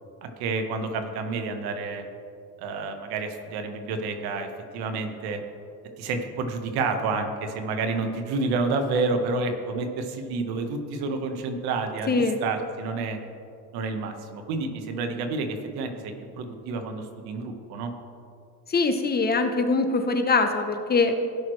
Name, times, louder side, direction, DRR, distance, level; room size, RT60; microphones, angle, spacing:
voice 1, 0.2-2.0 2.6-4.5 4.7-5.4 6.0-12.1 12.4-13.2 13.7-17.9, right 3 dB, 80° right, 6 dB, 1.3 m, -29 dB
voice 2, 12.1-12.4 18.7-21.1, left 3 dB, 25° left, 6 dB, 0.7 m, -23 dB
16.5 x 6.2 x 3.2 m, 2.4 s
cardioid pair, 130°, 38 cm